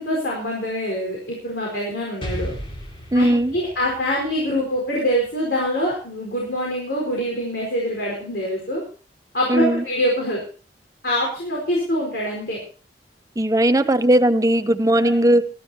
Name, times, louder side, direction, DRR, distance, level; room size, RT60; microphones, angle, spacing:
voice 1, 0.0-2.5 3.1-8.8 9.3-10.4 11.0-12.6 13.7-13.9 15.0-15.1, equal, 65° left, -2 dB, 4.8 m, -24 dB
Explosion, 2.2-6.0, equal, 30° left, 4.4 m, -35 dB
voice 2, 3.1-3.5 9.5-9.8 13.4-15.4, right 1 dB, 20° right, 11 dB, 0.7 m, -17 dB
22.5 x 14.0 x 2.9 m, 0.38 s
head